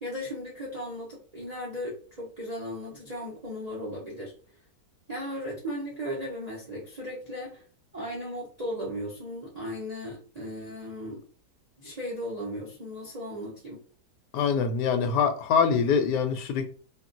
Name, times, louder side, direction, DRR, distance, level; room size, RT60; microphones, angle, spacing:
voice 1, 0.0-4.3 5.1-7.6 7.9-11.2 11.8-13.8, equal, 55° right, 0.4 m, -36 dB
voice 2, 14.3-16.8, left 6 dB, 90° left, 1.2 m, -24 dB
3.7 x 2.3 x 2.5 m
omnidirectional pair, 1.7 m